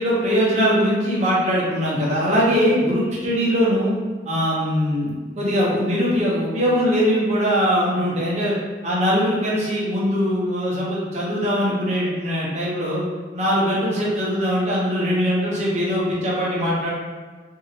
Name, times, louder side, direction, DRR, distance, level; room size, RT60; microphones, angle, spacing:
voice 1, 0.0-3.9 4.2-8.5 8.8-13.0 13.3-16.9, equal, 40° right, -6 dB, 0.9 m, -21 dB
2.9 x 2.7 x 2.8 m, 1.4 s
head